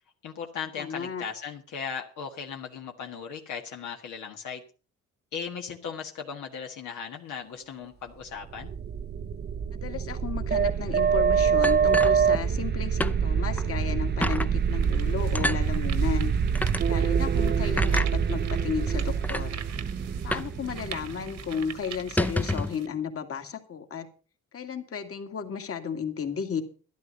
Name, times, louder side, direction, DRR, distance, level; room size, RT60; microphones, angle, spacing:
voice 1, 0.2-4.6 5.3-8.7, left 6 dB, 80° left, 2 dB, 1.7 m, -37 dB
voice 2, 0.8-1.2 9.7-16.3 16.9-19.6 20.2-24.1 24.5-26.6, left 7 dB, 50° left, 6 dB, 2.2 m, -33 dB
sound 1, 8.4-22.1, right 7 dB, 35° right, 0.6 m, -26 dB
sound 2, 11.6-12.7 13.0-13.2 13.6-13.7 14.2-14.5 15.3-15.6 16.5-16.8 17.8-18.1 18.9-19.0 19.2-19.5 20.3-20.6 20.8-20.9 21.3-21.5 22.0-22.8, left 1 dB, 5° left, 0.6 m, -28 dB
sound 3, 13.7-13.8 14.4-22.9, right 9 dB, 65° right, 1.5 m, -44 dB
12.5 x 11.5 x 5.3 m, 0.37 s
cardioid pair, 90°, 30 cm